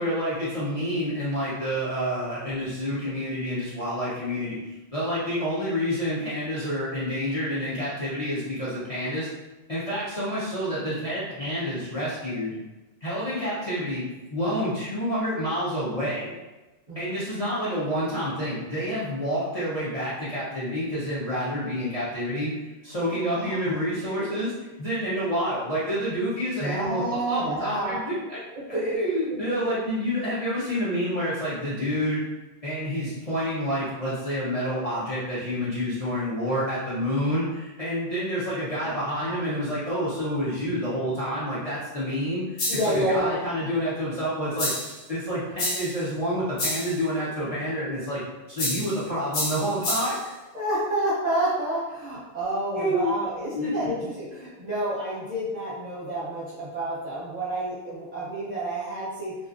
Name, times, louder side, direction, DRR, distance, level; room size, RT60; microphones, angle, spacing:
voice 1, 0.0-9.3 9.7-12.5 13.0-16.3 17.0-22.5 22.8-24.5 24.8-28.4 28.7-32.2 32.6-44.7 45.1-48.2 48.5-50.1 52.8-53.1 53.5-53.9, equal, 35° left, -10 dB, 0.6 m, -28 dB
voice 2, 23.0-23.8 26.6-28.0 28.5-28.8 29.6-29.7 38.8-39.4 42.7-43.3 50.5-59.3, right 1 dB, 45° right, -9 dB, 0.7 m, -29 dB
sound 1, 42.6-43.0 44.6-45.0 45.6-46.0 46.6-47.0 48.6-49.0 49.3-50.2, left 1 dB, 75° left, 0.9 m, -29 dB
2.6 x 2.3 x 2.5 m, 1.1 s
omnidirectional pair, 1.3 m